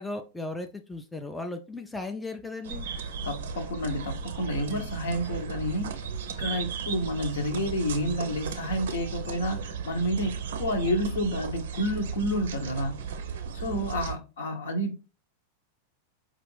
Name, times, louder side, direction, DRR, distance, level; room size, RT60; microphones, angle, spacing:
voice 1, 0.0-2.8, left 2 dB, 10° left, 0.4 m, -36 dB
sound 1, 2.6-14.2, right 6 dB, 60° right, 0.5 m, -35 dB
voice 2, 3.2-5.9 6.4-13.0 13.5-15.0, equal, 60° left, 0.9 m, -30 dB
4.9 x 2.4 x 3.2 m
figure-of-eight pair, 90°, 0 cm